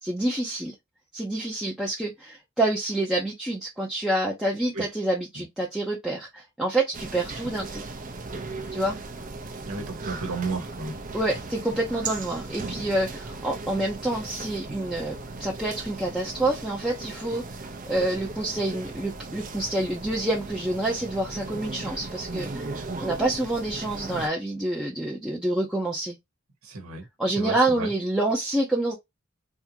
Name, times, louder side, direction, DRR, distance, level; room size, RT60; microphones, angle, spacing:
voice 1, 0.0-0.7 1.1-7.9 8.7-9.0 11.1-17.4 17.9-26.2 27.2-29.0, right 1 dB, 5° right, 0.7 m, -27 dB
sound 1, 6.9-24.3, right 3 dB, 40° right, 0.7 m, -37 dB
voice 2, 9.7-10.9 26.6-27.1 27.4-27.9, right 3 dB, 80° right, 1.2 m, -32 dB
3.6 x 2.7 x 2.8 m
head